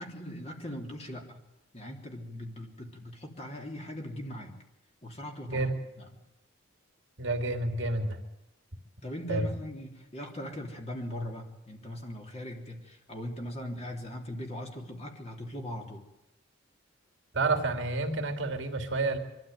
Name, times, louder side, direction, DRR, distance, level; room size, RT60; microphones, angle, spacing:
voice 1, 0.0-1.4 1.7-4.6 5.0-5.7 6.0-6.1 9.0-16.0, equal, 30° left, 2 dB, 3.3 m, -40 dB
voice 2, 7.2-8.2 9.3-9.5 17.3-19.2, right 2 dB, 65° right, 4 dB, 2.9 m, -29 dB
23.5 x 13.5 x 9.4 m, 0.94 s
head